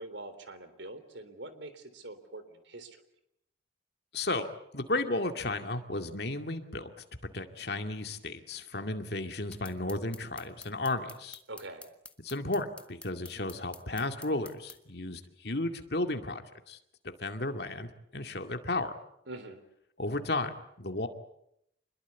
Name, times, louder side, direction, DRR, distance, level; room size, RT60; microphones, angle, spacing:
voice 1, 0.0-3.0 11.5-11.9 19.3-19.6, right 2 dB, 75° right, 11 dB, 3.6 m, -44 dB
voice 2, 4.1-4.5 4.7-6.9 7.3-11.4 12.2-16.8 17.0-18.9 20.0-21.1, left 2 dB, 55° left, 6 dB, 2.3 m, -34 dB
sound 1, 9.5-14.8, left 3 dB, 5° left, 1.4 m, -49 dB
27.0 x 21.5 x 8.3 m, 0.77 s
head